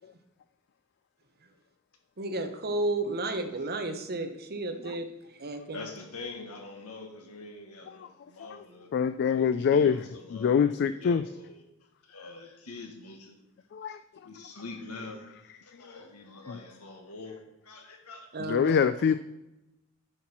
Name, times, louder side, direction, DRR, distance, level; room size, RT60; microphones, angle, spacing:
voice 1, 2.2-5.1 5.4-5.8 18.3-18.7, right 2 dB, 45° right, 7 dB, 1.0 m, -32 dB
voice 2, 5.7-8.9 9.2-11.6 12.0-13.4 14.2-15.4 15.6-18.3 18.6-19.1, left 3 dB, 75° left, 4 dB, 1.6 m, -45 dB
voice 3, 8.9-10.0 10.3-11.2 13.7-14.0 15.8-15.9 16.5-16.6 18.5-19.2, left 7 dB, 50° left, 12 dB, 0.3 m, -24 dB
10.0 x 5.9 x 4.3 m, 0.93 s
head